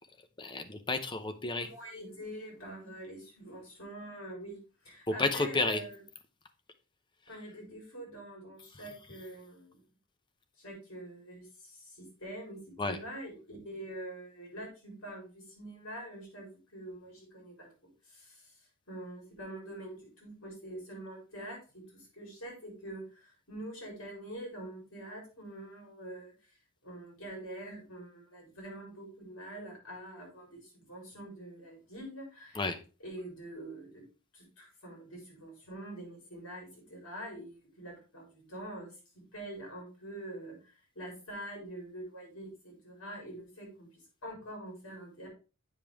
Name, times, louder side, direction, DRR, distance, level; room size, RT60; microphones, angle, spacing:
voice 1, 0.4-1.7 5.1-5.8 8.8-8.9 12.8-13.0 32.5-32.8, left 3 dB, 20° left, 8 dB, 0.7 m, -31 dB
voice 2, 1.7-4.6 4.8-6.0 7.3-9.8 10.6-17.7 18.0-18.6 18.9-26.3 26.8-32.6 33.0-34.0 34.3-45.3, right 1 dB, 65° left, 0 dB, 3.9 m, -45 dB
8.7 x 5.1 x 3.5 m, 0.33 s
head